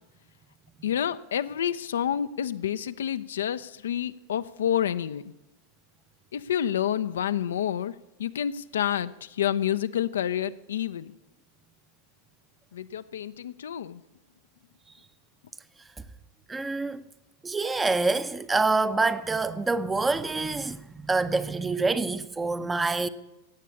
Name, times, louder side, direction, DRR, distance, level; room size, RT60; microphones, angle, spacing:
voice 1, 0.8-5.2 6.3-7.9 8.2-11.1 12.7-14.0, left 10 dB, 65° left, 0.5 m, -29 dB
voice 2, 16.5-17.0 17.4-23.1, right 3 dB, 10° right, 0.7 m, -26 dB
16.5 x 8.3 x 8.5 m
figure-of-eight pair, 90°, 0 cm